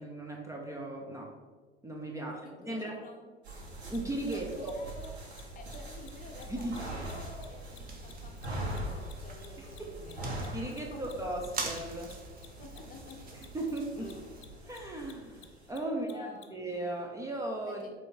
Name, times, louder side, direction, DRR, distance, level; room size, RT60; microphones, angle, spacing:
voice 1, 0.0-1.4 1.8-3.0 3.9-4.7 6.5-6.8 9.6-9.9 10.5-12.1 13.3-14.1 14.7-17.8, right 1 dB, 10° right, -1 dB, 0.8 m, -37 dB
voice 2, 2.1-3.3 4.3-5.1 5.5-10.3 10.7-11.2 12.6-13.5 14.0-14.3 15.9-16.7 17.6-17.9, left 3 dB, 25° left, 3 dB, 1.0 m, -50 dB
sound 1, 3.4-15.7, right 1 dB, 75° right, 1.8 m, -43 dB
Mechanisms, 3.9-4.0 4.2-4.4 4.6-4.7 5.0-5.1 5.3-5.4 5.7-5.8 6.0-6.1 6.4-9.1 9.4-16.5, left 12 dB, 55° left, 0.8 m, -54 dB
sound 2, 6.2-14.4, right 3 dB, 25° right, 1.2 m, -45 dB
7.6 x 3.5 x 4.2 m, 1.4 s
figure-of-eight pair, 80°, 32 cm